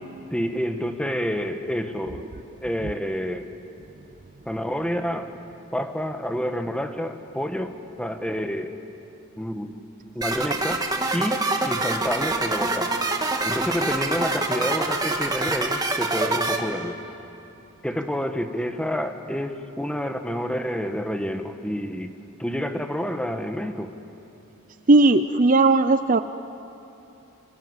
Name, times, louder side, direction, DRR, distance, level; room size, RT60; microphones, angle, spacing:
voice 1, 0.3-2.3 2.6-3.5 4.4-5.3 5.7-8.7 9.3-9.7 10.1-10.8 11.1-13.0 13.4-17.0 17.8-22.1 22.4-23.9, equal, 5° left, 6 dB, 1.5 m, -28 dB
sound 1, 10.2-16.6, right 2 dB, 20° right, 1.9 m, -25 dB
voice 2, 24.9-26.2, right 2 dB, 40° right, 11 dB, 0.6 m, -17 dB
27.5 x 26.5 x 8.1 m, 2.9 s
head